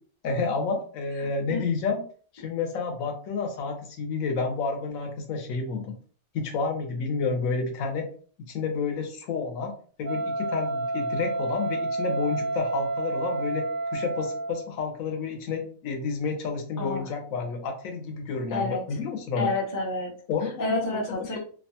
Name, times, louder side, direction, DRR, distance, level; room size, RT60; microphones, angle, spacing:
voice 1, 0.2-2.0 2.4-5.9 6.3-8.1 8.5-9.7 10.0-13.6 13.9-19.5 20.3-20.8 21.3-21.4, left 4 dB, 80° left, 4 dB, 1.1 m, -30 dB
Wind instrument woodwind instrument, 10.0-14.7, right 2 dB, 60° right, 0.6 m, -30 dB
voice 2, 16.8-17.1 18.5-18.8 19.4-20.1 20.6-21.4, left 2 dB, 25° left, 0 dB, 0.4 m, -29 dB
2.8 x 2.2 x 2.7 m, 0.43 s
omnidirectional pair, 1.4 m